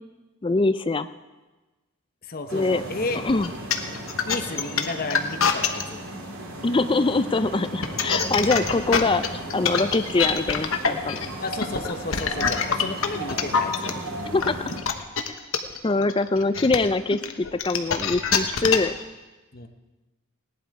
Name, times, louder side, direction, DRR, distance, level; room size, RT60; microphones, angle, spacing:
voice 1, 0.4-1.1 2.5-2.8 3.2-3.5 6.6-11.2 14.3-14.6 15.8-19.0, left 3 dB, 25° left, 11 dB, 0.4 m, -23 dB
voice 2, 2.2-3.2 4.2-6.0 8.5-8.7 11.4-13.9 19.5-19.7, left 3 dB, 45° left, 6 dB, 1.0 m, -32 dB
sound 1, 2.5-14.8, right 1 dB, 70° right, 2.3 m, -36 dB
sound 2, 3.4-5.8 7.6-13.9 14.4-19.0, left 6 dB, 70° left, 1.1 m, -24 dB
17.5 x 11.0 x 4.8 m, 1.2 s
head